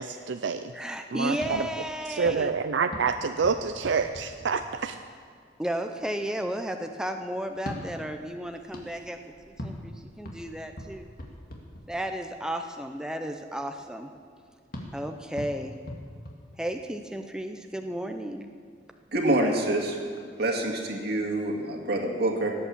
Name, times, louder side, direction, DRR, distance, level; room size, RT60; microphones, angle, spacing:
voice 1, 0.0-0.7 1.1-1.7 2.1-5.0, right 5 dB, 80° right, 8 dB, 0.5 m, -27 dB
voice 2, 0.7-2.5 5.6-9.2 9.5-11.1 11.9-14.1 14.9-15.7 16.6-18.5, equal, 5° right, 5 dB, 0.6 m, -33 dB
sound 1, 1.3-5.2 7.5-12.4 14.7-17.1, left 1 dB, 55° left, 2.2 m, -43 dB
voice 3, 19.1-20.0 20.4-22.5, right 1 dB, 60° right, 1 dB, 2.2 m, -26 dB
17.0 x 8.5 x 7.2 m, 2.1 s
head